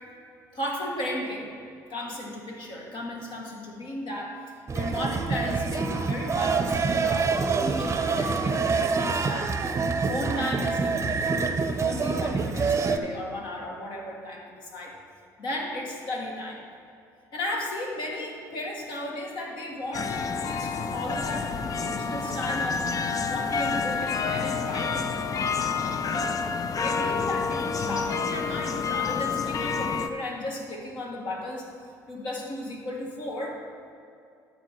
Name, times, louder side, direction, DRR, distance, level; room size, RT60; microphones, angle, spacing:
voice 1, 0.5-1.5 1.9-4.4 4.7-9.6 10.1-11.2 11.8-14.9 15.4-16.6 17.3-21.5 21.8-22.9 23.3-25.1 26.0-26.4 26.7-31.7 32.1-33.6, left 1 dB, 55° left, -1 dB, 1.8 m, -34 dB
sound 1, 4.7-13.0, right 4 dB, 30° right, 0.7 m, -26 dB
sound 2, 19.9-30.1, left 5 dB, 40° left, 0.6 m, -28 dB
13.5 x 4.6 x 4.5 m, 2.5 s
hypercardioid pair, 55°, 10 cm